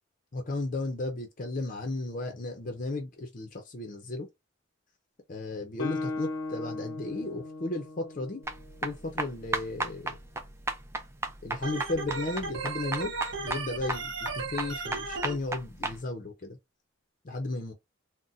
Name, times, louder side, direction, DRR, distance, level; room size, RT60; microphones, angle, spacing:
voice 1, 0.3-4.3 5.3-8.4 8.8-10.2 11.4-13.1 13.4-16.6 17.2-17.7, left 2 dB, 40° left, 0.6 m, -34 dB
Guitar, 5.8-9.5, left 3 dB, 85° left, 0.7 m, -37 dB
sound 1, 8.4-16.0, right 2 dB, 15° right, 0.4 m, -34 dB
Organ, 11.6-15.3, right 4 dB, 65° right, 1.2 m, -35 dB
3.9 x 2.1 x 2.5 m
head